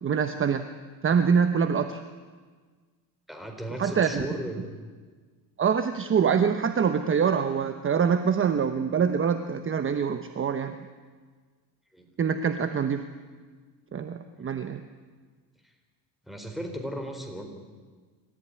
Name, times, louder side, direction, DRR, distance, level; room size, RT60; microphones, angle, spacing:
voice 1, 0.0-0.6 1.0-2.0 3.8-4.3 5.6-10.7 12.2-13.0 13.9-14.8, right 6 dB, 30° right, 9 dB, 1.0 m, -25 dB
voice 2, 3.3-4.6 11.9-12.1 14.4-14.5 15.6-15.7 16.2-17.5, equal, ahead, 4 dB, 4.0 m, -36 dB
26.0 x 14.5 x 9.7 m, 1.5 s
cardioid pair, 120°, 41 cm